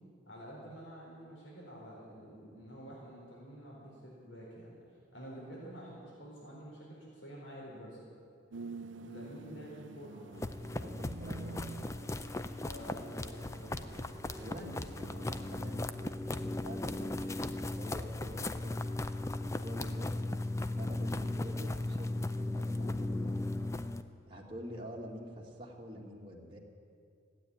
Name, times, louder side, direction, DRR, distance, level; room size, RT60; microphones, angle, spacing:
voice 1, 0.2-4.8 5.1-8.1 9.0-10.6 11.2-11.4 12.6-14.0, equal, 75° left, -4 dB, 4.2 m, -49 dB
sound 1, 8.5-15.2, right 4 dB, 80° right, 0.5 m, -49 dB
sound 2, 10.3-24.0, left 2 dB, 15° left, 0.4 m, -37 dB
voice 2, 10.8-11.6 14.3-18.7 19.4-20.1 20.8-23.7 24.3-26.6, equal, 25° right, -2 dB, 2.1 m, -46 dB
15.5 x 9.0 x 9.9 m, 2.3 s
head